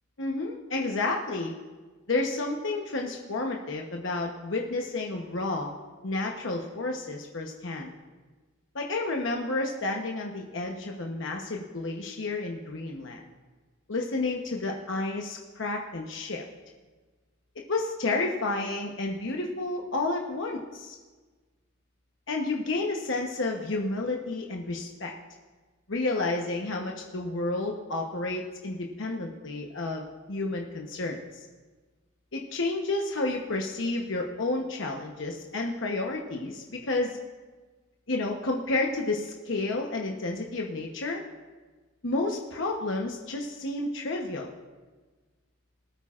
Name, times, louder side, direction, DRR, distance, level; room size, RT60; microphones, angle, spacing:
voice 1, 0.2-1.6 2.1-5.7 6.0-7.9 8.7-13.2 13.9-16.4 17.7-21.0 22.3-25.1 25.9-31.5 32.3-37.2 38.1-41.2 42.0-44.5, left 2 dB, 70° left, 0 dB, 1.0 m, -31 dB
19.5 x 12.5 x 2.5 m, 1.3 s
head